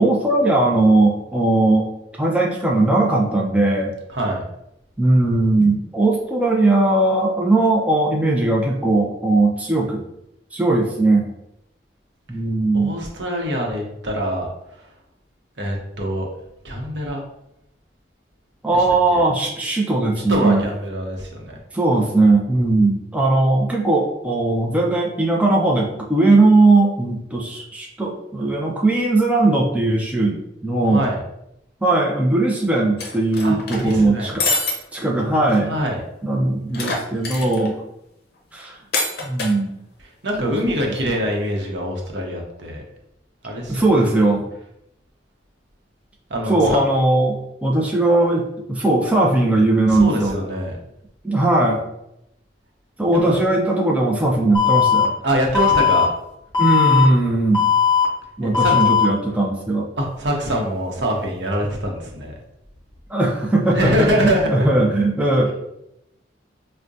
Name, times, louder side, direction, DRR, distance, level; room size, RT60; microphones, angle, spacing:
voice 1, 0.0-1.9 2.2-3.9 5.0-10.0 10.5-11.3 12.3-13.0 18.6-20.7 21.7-31.0 31.8-34.5 34.9-35.7 36.2-37.8 38.5-38.7 39.2-39.8 40.4-40.7 41.0-41.1 43.7-44.5 46.5-50.4 51.2-51.8 53.0-55.1 56.6-57.7 58.4-59.9 63.1-65.5, right 2 dB, 5° right, -2 dB, 0.4 m, -18 dB
voice 2, 4.1-4.4 12.7-14.5 15.6-16.3 16.6-17.2 18.7-18.8 19.1-19.2 20.3-21.6 30.9-31.2 33.4-34.3 35.7-36.0 40.2-42.8 43.4-43.9 46.3-46.8 49.9-50.7 53.2-53.4 55.2-56.1 58.4-58.8 60.0-62.3 63.7-64.5, equal, 70° right, 0 dB, 0.8 m, -24 dB
sound 1, 33.0-33.9 34.4-34.8 35.2-35.3 35.5-35.6 36.7-37.7 38.9-39.5, left 3 dB, 60° left, 0.6 m, -24 dB
Alarm, 54.5-55.0 55.5-56.0 56.5-57.0 57.5-58.0 58.5-59.0, left 7 dB, 25° left, 0.8 m, -17 dB
4.6 x 2.1 x 2.6 m, 0.83 s
head